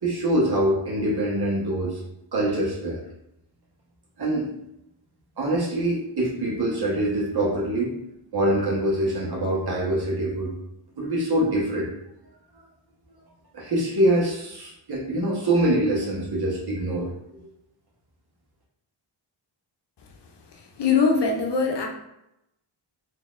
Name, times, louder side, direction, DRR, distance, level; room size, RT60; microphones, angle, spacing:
voice 1, 0.0-2.0 2.3-3.0 4.2-4.5 5.4-8.0 8.3-10.5 11.0-11.9 13.5-17.4, right 1 dB, 50° right, -4 dB, 1.3 m, -24 dB
voice 2, 20.8-21.9, left 5 dB, 60° left, 2 dB, 0.7 m, -21 dB
3.9 x 2.9 x 2.5 m, 0.84 s
cardioid pair, 75°, 48 cm